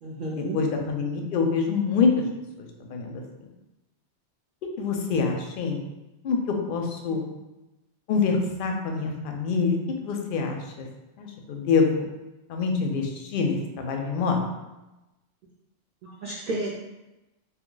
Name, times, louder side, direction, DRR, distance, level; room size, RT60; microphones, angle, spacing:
voice 1, 0.0-0.6 7.1-7.2 16.0-16.7, right 2 dB, 60° right, -4 dB, 0.6 m, -32 dB
voice 2, 0.5-2.1 2.9-3.2 4.6-5.8 6.2-7.2 8.1-10.9 11.2-12.1 12.5-14.4, left 5 dB, 60° left, 2 dB, 0.6 m, -25 dB
2.8 x 2.2 x 3.8 m, 1.0 s
omnidirectional pair, 1.2 m